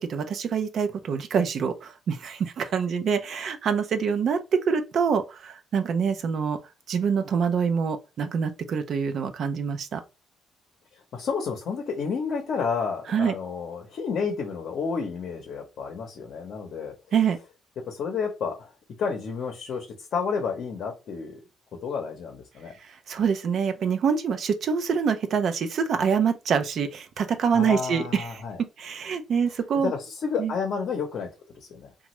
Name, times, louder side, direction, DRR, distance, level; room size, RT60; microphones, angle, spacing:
voice 1, 0.0-6.6 6.9-10.0 13.1-13.3 17.1-17.4 22.8-28.4 28.8-29.9 30.4-30.5, right 6 dB, 65° right, 0.4 m, -25 dB
voice 2, 11.1-16.9 17.8-18.7 19.0-21.4 21.8-22.8 27.5-28.6 29.8-31.9, left 5 dB, 65° left, 0.7 m, -30 dB
2.9 x 2.3 x 2.9 m
cardioid pair, 90°, 0 cm